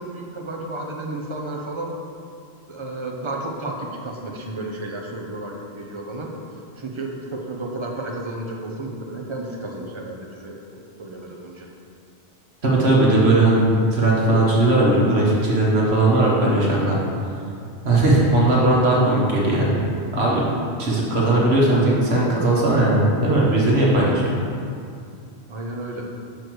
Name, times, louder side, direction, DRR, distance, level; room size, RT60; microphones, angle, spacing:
voice 1, 0.0-1.9 2.7-6.3 6.8-11.7 25.5-26.1, right 2 dB, 30° right, 0 dB, 0.9 m, -32 dB
voice 2, 12.6-17.0 17.8-19.7 20.1-20.4 20.8-24.2, right 2 dB, 70° right, -5 dB, 1.6 m, -18 dB
6.4 x 5.1 x 6.2 m, 2.4 s
omnidirectional pair, 1.1 m